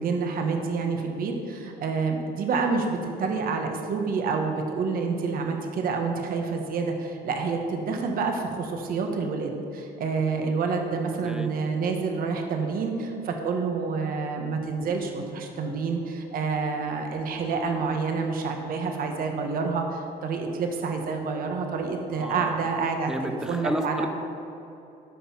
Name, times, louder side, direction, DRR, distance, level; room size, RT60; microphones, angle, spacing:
voice 1, 0.0-24.1, right 4 dB, 60° right, 3 dB, 1.3 m, -28 dB
voice 2, 22.1-22.6 23.0-24.1, equal, 5° right, 6 dB, 0.8 m, -32 dB
13.5 x 5.6 x 5.8 m, 2.8 s
cardioid pair, 110°, 17 cm